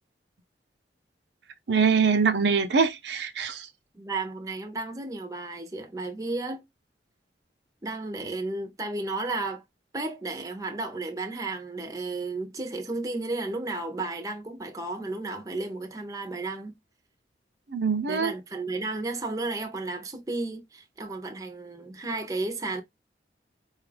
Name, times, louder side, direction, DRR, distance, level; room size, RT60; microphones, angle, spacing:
voice 1, 1.7-3.7 17.7-18.3, right 5 dB, 75° right, 0.7 m, -23 dB
voice 2, 3.9-6.6 7.8-9.6 9.9-16.7 18.1-22.8, right 2 dB, 20° right, 0.6 m, -33 dB
4.3 x 2.4 x 3.2 m
head